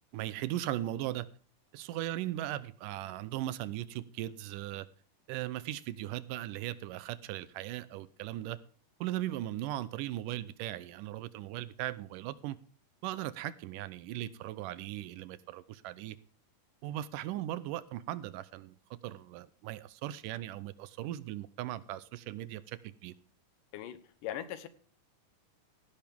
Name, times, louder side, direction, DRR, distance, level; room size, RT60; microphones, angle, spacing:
voice 1, 0.1-1.3 1.7-4.9 5.3-8.6 9.0-12.6 13.0-16.2 16.8-23.1, right 14 dB, 85° right, 2.3 m, -38 dB
voice 2, 23.7-24.7, left 11 dB, 90° left, 2.7 m, -40 dB
17.0 x 10.5 x 3.5 m
omnidirectional pair, 3.7 m